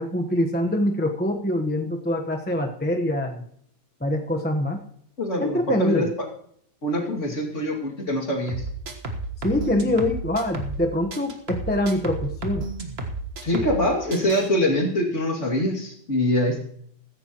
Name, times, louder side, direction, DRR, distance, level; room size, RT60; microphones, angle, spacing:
voice 1, 0.0-3.4 4.0-4.8 5.4-6.1 9.4-12.7, left 1 dB, 5° left, 3 dB, 0.9 m, -24 dB
voice 2, 5.2-6.3 6.8-8.7 13.4-16.6, left 1 dB, 45° left, 0 dB, 2.8 m, -24 dB
sound 1, 8.5-10.8 11.1-13.8 14.1-14.5, right 2 dB, 40° right, 1.7 m, -32 dB
15.5 x 15.0 x 3.0 m, 0.65 s
omnidirectional pair, 1.8 m